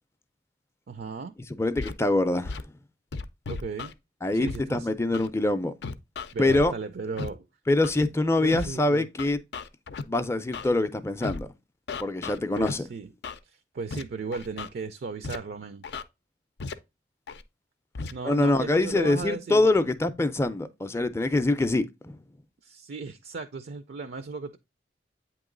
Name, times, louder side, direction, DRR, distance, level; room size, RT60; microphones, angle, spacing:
voice 1, 0.9-1.3 3.5-3.9 4.3-4.9 6.3-7.5 8.4-9.1 12.5-13.1 13.5-15.8 18.1-19.7 22.6-24.6, right 4 dB, 65° right, 0.4 m, -36 dB
voice 2, 1.5-2.6 4.2-5.7 6.4-6.7 7.7-9.4 10.1-11.5 12.0-12.9 18.2-22.2, left 2 dB, 15° left, 0.4 m, -24 dB
Scratching (performance technique), 1.8-1.9 2.4-2.6 3.1-3.9 4.5-4.6 5.1-5.3 5.8-6.7 7.2-7.3 7.8-8.1 8.5-8.7 9.2-10.0 10.5-10.7 11.2-11.4 11.9-12.7 13.2-13.4 13.9-14.0 14.3-14.7 15.2-15.4 15.8-16.0 16.6-16.7 17.3-17.4 17.9-18.1, left 4 dB, 70° left, 0.4 m, -35 dB
8.4 x 3.0 x 3.7 m
head